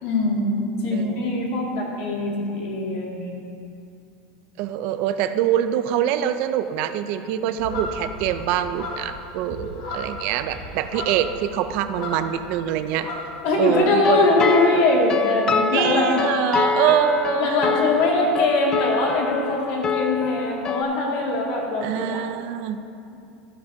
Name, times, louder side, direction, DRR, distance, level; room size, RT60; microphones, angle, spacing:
voice 1, 0.0-3.4 13.4-16.2 17.4-22.2, left 2 dB, 55° left, -2 dB, 2.0 m, -22 dB
voice 2, 0.9-1.3 4.6-13.1 13.6-14.4 15.7-17.6 21.8-22.8, right 10 dB, 45° right, 10 dB, 0.4 m, -24 dB
sound 1, 7.6-12.5 12.8-13.8, left 1 dB, 80° left, 2.6 m, -35 dB
sound 2, 13.7-20.8, left 5 dB, 20° left, 0.4 m, -26 dB
13.0 x 10.5 x 2.7 m, 2.6 s
supercardioid pair, 170°, 3 cm